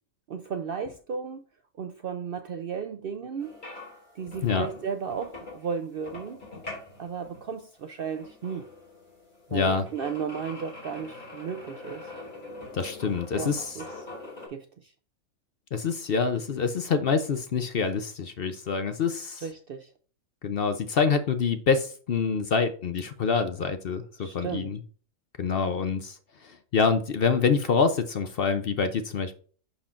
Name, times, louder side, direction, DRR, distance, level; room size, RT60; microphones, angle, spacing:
voice 1, 0.3-1.4 1.8-3.5 4.2-6.4 7.0-8.7 9.5-12.1 13.1-13.9 14.5-14.9 19.4-19.9 24.2-24.7, right 6 dB, 65° right, 0.6 m, -34 dB
sound 1, 3.4-14.5, left 2 dB, 35° left, 2.7 m, -44 dB
voice 2, 9.5-9.9 12.7-13.8 15.7-19.4 20.4-24.8 25.4-29.3, left 5 dB, 55° left, 0.7 m, -26 dB
11.0 x 4.4 x 2.5 m
omnidirectional pair, 1.4 m